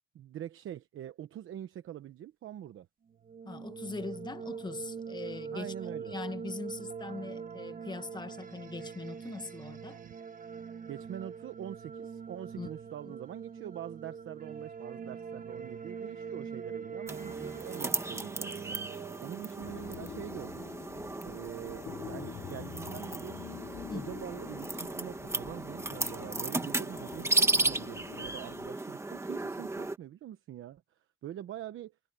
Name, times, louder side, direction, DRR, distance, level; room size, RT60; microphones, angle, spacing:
voice 1, 0.1-2.9 5.5-6.1 10.9-20.6 21.2-23.4 23.9-30.8 31.2-31.9, right 11 dB, 75° right, 1.0 m, -44 dB
sound 1, 3.1-19.9, right 6 dB, 45° right, 1.4 m, -43 dB
voice 2, 3.4-10.0 12.6-12.7 13.1-13.2 23.9-24.1, left 3 dB, 20° left, 1.1 m, -41 dB
sound 2, 17.1-30.0, right 2 dB, 15° right, 1.3 m, -35 dB
sound 3, 19.6-28.7, left 10 dB, 55° left, 0.8 m, -46 dB
wide cardioid pair, 160°, 21 cm